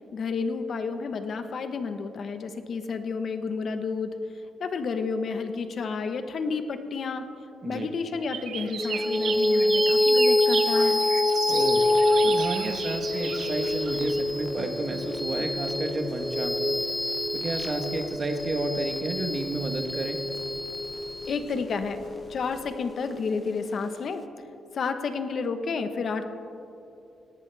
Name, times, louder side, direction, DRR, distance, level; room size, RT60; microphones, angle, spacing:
voice 1, 0.1-4.1 4.6-7.3 7.6-11.0 21.2-22.0 22.3-24.3 24.7-26.2, left 5 dB, 50° left, 8 dB, 1.1 m, -31 dB
sound 1, 8.3-14.2, right 8 dB, 70° right, 0.7 m, -35 dB
sound 2, 8.8-23.5, left 1 dB, 10° left, 0.6 m, -26 dB
voice 2, 11.5-11.8 12.2-16.7 17.3-20.2, right 2 dB, 35° right, 5 dB, 1.2 m, -31 dB
sound 3, 12.2-22.6, left 1 dB, 85° left, 3.3 m, -51 dB
18.0 x 18.0 x 3.4 m, 2.8 s
cardioid pair, 120°, 0 cm